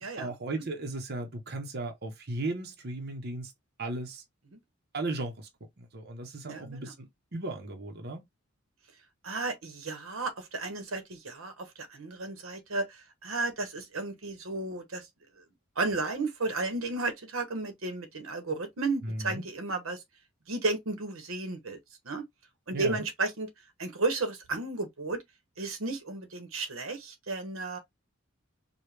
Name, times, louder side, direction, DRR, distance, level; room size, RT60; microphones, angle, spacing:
voice 1, 0.2-3.5 3.8-4.2 4.9-5.5 5.8-8.2 19.0-19.5 22.7-23.0, right 2 dB, 50° right, 0.9 m, -36 dB
voice 2, 6.4-6.9 9.2-15.1 15.4-15.5 15.8-20.0 20.5-21.8 22.0-22.2 22.7-23.5 23.8-25.2 25.6-27.8, right 3 dB, 85° right, 1.1 m, -33 dB
4.8 x 2.4 x 3.3 m
head